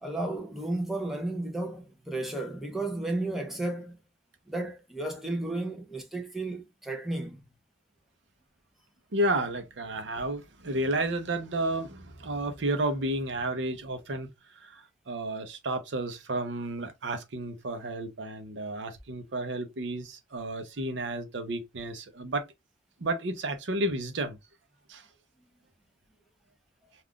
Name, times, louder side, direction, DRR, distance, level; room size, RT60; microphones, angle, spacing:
voice 1, 0.0-4.0 4.5-7.4, right 2 dB, ahead, 0.6 m, -33 dB
voice 2, 9.1-14.3 14.6-22.5 23.0-24.4 24.9-25.1, right 1 dB, 65° right, 0.6 m, -32 dB
2.4 x 2.3 x 3.5 m
head